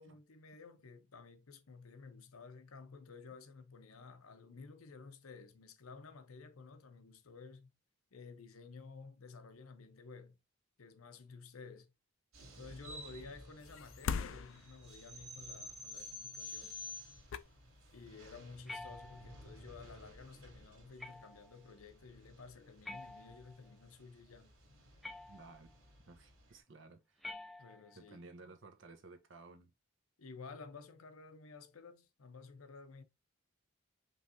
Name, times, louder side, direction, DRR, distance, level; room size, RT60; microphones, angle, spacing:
voice 1, 0.0-7.7 8.1-10.4 10.8-11.9 12.5-16.8 17.9-24.5 27.6-28.2 30.2-33.0, left 4 dB, 90° left, 0.7 m, -53 dB
sound 1, 12.3-26.5, left 1 dB, 90° right, 2.5 m, -52 dB
sound 2, 13.6-15.2 16.8-16.9 17.2-18.1 18.5-18.7, left 6 dB, 70° left, 0.4 m, -41 dB
sound 3, 18.7-19.5 21.0-21.6 22.8-23.7 25.0-25.7 27.2-28.1, left 2 dB, ahead, 0.4 m, -49 dB
voice 2, 25.3-25.7 26.1-27.3 27.9-29.7, right 3 dB, 60° right, 0.9 m, -56 dB
5.4 x 3.2 x 2.6 m
head